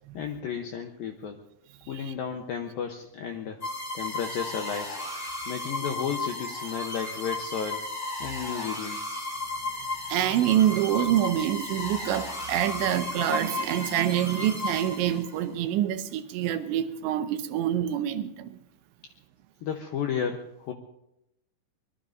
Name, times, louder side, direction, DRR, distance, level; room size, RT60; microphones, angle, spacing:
voice 1, 0.1-1.4 1.9-3.6 3.9-5.0 5.5-7.9 8.2-9.2 19.6-20.7, left 7 dB, 90° left, 4 dB, 2.0 m, -33 dB
sound 1, 3.6-15.4, left 2 dB, 30° left, 6.7 m, -34 dB
voice 2, 10.1-18.6, right 11 dB, 80° right, 9 dB, 2.9 m, -26 dB
24.0 x 20.5 x 2.6 m, 0.86 s
omnidirectional pair, 5.5 m